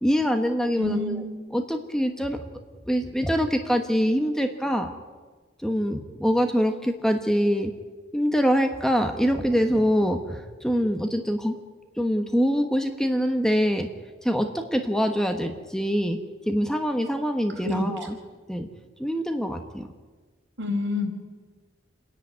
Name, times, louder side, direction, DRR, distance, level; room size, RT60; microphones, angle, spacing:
voice 1, 0.0-1.2 1.5-2.4 2.9-4.9 5.6-7.7 8.1-11.5 12.0-13.9 14.2-16.2 16.5-18.2 18.5-18.7 19.0-19.9, equal, 5° left, 5 dB, 1.2 m, -24 dB
voice 2, 0.8-1.2 17.6-17.8 20.6-21.1, left 2 dB, 65° right, 2 dB, 4.8 m, -27 dB
28.5 x 11.0 x 9.5 m, 1.4 s
head